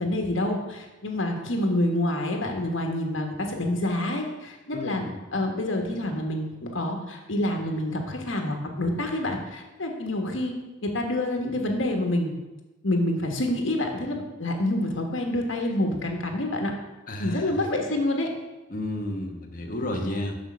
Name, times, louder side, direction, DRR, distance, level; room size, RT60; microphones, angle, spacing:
voice 1, 0.0-5.0 5.3-10.5 10.8-12.3 12.8-16.7 17.2-18.3, left 1 dB, 80° left, 2 dB, 1.4 m, -27 dB
voice 2, 4.7-5.2 17.1-17.6 18.7-20.4, left 1 dB, 45° left, 3 dB, 1.1 m, -32 dB
6.5 x 6.4 x 6.2 m, 1.1 s
head